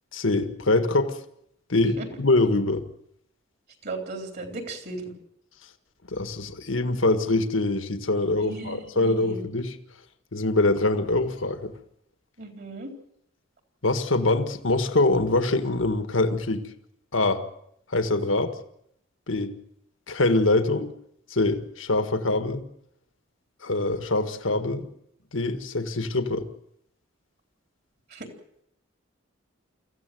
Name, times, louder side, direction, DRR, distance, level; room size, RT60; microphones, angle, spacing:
voice 1, 0.1-1.2 1.7-2.8 6.1-9.8 10.3-11.7 13.8-16.7 17.1-17.4 17.9-18.5 19.3-19.5 20.1-20.9 21.3-22.6 23.6-24.9 25.3-26.5, left 2 dB, 75° left, 8 dB, 1.7 m, -24 dB
voice 2, 3.8-5.1 8.3-9.4 12.4-12.9 28.1-28.3, right 2 dB, 55° right, 4 dB, 3.9 m, -36 dB
25.5 x 15.0 x 7.8 m, 0.74 s
head